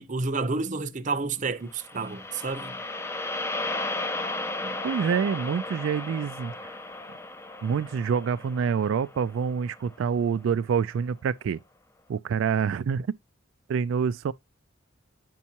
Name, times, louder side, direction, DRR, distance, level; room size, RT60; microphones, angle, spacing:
voice 1, 0.0-2.8 4.6-4.8, right 3 dB, 40° right, 0.6 m, -30 dB
sound 1, 1.7-10.0, left 2 dB, 15° left, 0.4 m, -35 dB
voice 2, 4.8-6.7 7.6-11.6 12.1-13.1 13.7-14.3, right 6 dB, 80° right, 0.3 m, -26 dB
8.4 x 5.4 x 2.8 m
head